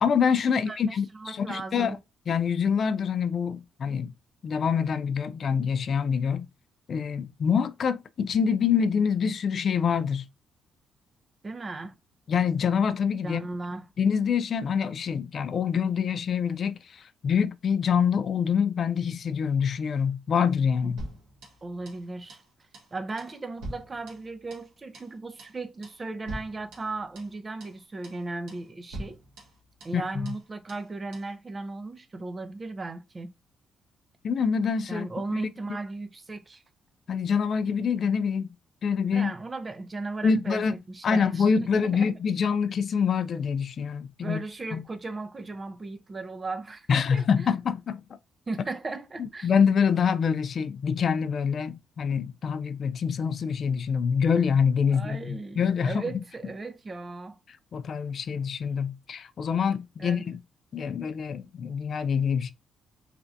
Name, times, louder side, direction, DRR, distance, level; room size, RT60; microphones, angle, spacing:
voice 1, 0.0-2.0 2.3-4.1 4.4-6.5 6.9-10.2 12.3-13.4 14.0-21.0 29.9-30.3 34.2-35.1 35.3-35.4 37.1-38.5 38.8-39.3 40.2-40.8 41.0-44.4 44.7-44.8 46.9-48.0 49.2-56.2 57.7-60.4 60.7-62.5, left 6 dB, 55° left, 0.3 m, -26 dB
voice 2, 0.7-2.0 11.4-11.9 13.2-13.9 21.6-22.4 22.9-29.2 29.8-33.3 34.9-36.6 39.1-41.5 41.8-42.1 44.2-47.5 48.5-49.5 54.9-57.4 60.0-60.3, right 3 dB, 30° right, 0.5 m, -36 dB
sound 1, 21.0-22.0 22.3-22.5 22.7-22.9 23.2-24.7 24.9-25.1 25.4-25.6 25.8-26.0 26.3-27.3 27.6-27.8 28.0-28.2 28.5-28.7 28.9-30.0 30.3-30.4 30.7-30.9 31.1-31.3, right 1 dB, 90° right, 1.2 m, -43 dB
3.3 x 2.5 x 2.5 m
cardioid pair, 90°, 0 cm